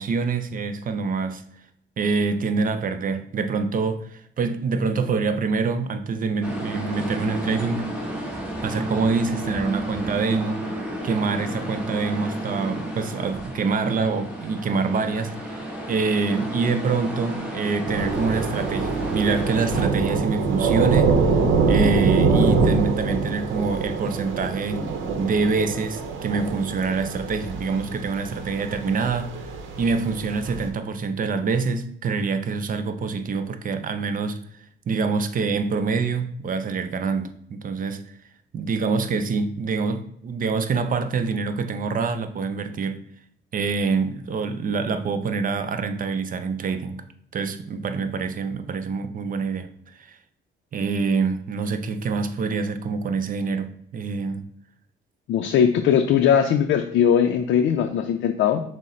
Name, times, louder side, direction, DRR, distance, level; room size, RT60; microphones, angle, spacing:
voice 1, 0.0-1.4 2.0-7.9 8.6-10.6 11.0-15.6 15.9-21.1 21.7-24.9 25.2-29.5 29.8-34.4 34.9-38.0 38.5-43.1 43.5-47.0 47.3-50.1 50.7-54.5, right 4 dB, 45° right, 0.5 m, -25 dB
sound 1, 6.4-19.9, right 1 dB, 5° right, 1.4 m, -31 dB
Thunder / Rain, 17.9-30.7, right 4 dB, 75° right, 0.7 m, -24 dB
voice 2, 55.3-58.6, left 8 dB, 70° left, 0.4 m, -20 dB
6.2 x 2.1 x 4.2 m
cardioid pair, 90°, 20 cm